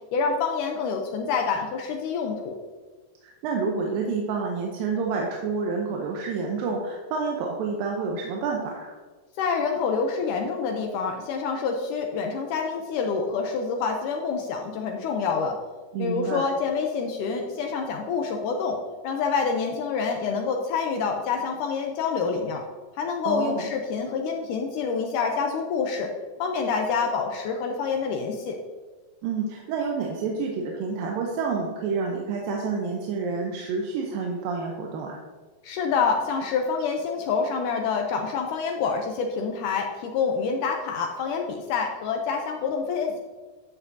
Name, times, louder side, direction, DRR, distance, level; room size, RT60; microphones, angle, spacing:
voice 1, 0.1-2.6 9.4-15.6 16.0-18.8 19.0-22.6 23.0-26.1 26.4-28.6 35.6-43.2, left 5 dB, 80° left, 3 dB, 2.1 m, -27 dB
voice 2, 3.2-9.0 15.9-16.4 23.3-23.6 29.2-35.2, right 4 dB, 90° right, -1 dB, 2.6 m, -29 dB
11.0 x 7.3 x 2.7 m, 1.4 s
omnidirectional pair, 3.9 m